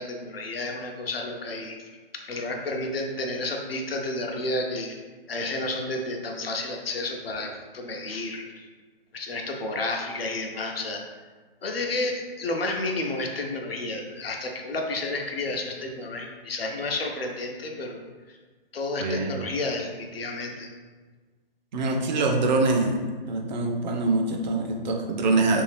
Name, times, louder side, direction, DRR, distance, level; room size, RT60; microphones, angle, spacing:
voice 1, 0.0-1.8 2.1-5.0 5.3-8.7 9.1-11.0 11.6-18.0 18.7-20.7, left 2 dB, 80° left, 2 dB, 0.6 m, -31 dB
voice 2, 19.0-19.3 21.7-23.0 23.3-25.6, right 3 dB, 50° right, 3 dB, 0.5 m, -24 dB
2.7 x 2.4 x 3.2 m, 1.4 s
figure-of-eight pair, 125°, 29 cm